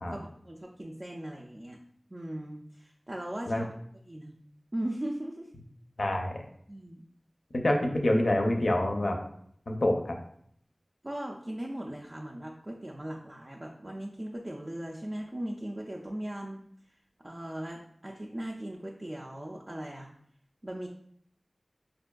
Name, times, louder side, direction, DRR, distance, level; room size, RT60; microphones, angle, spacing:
voice 1, 0.1-1.8 2.1-3.7 4.1-4.3 4.7-5.5 6.7-7.0 11.0-16.6 17.2-20.1 20.6-20.9, right 1 dB, 35° right, -2 dB, 0.3 m, -38 dB
voice 2, 6.0-6.4 7.5-9.2 9.7-10.2, left 1 dB, 70° left, 3 dB, 0.5 m, -26 dB
4.4 x 2.5 x 2.2 m, 0.66 s
wide cardioid pair, 60°, 0 cm